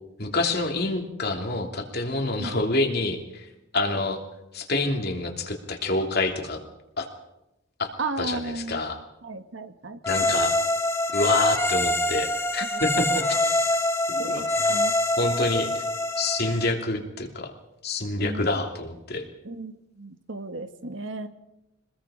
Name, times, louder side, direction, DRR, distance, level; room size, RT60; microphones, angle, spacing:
voice 1, 0.2-3.5 3.7-4.2 4.5-6.6 7.0-7.1 7.8-7.9 8.2-9.0 10.1-10.5 11.1-13.7 14.1-14.8 15.2-15.8 16.2-17.5 17.8-19.2, left 2 dB, 55° left, 3 dB, 2.9 m, -27 dB
voice 2, 8.0-8.9 9.2-10.3 12.7-13.4 14.2-14.9 18.2-18.5 19.4-21.3, right 2 dB, 75° right, 9 dB, 1.4 m, -35 dB
sound 1, 10.0-16.7, left 2 dB, 15° left, 2.3 m, -25 dB
26.0 x 20.5 x 5.0 m, 0.90 s
head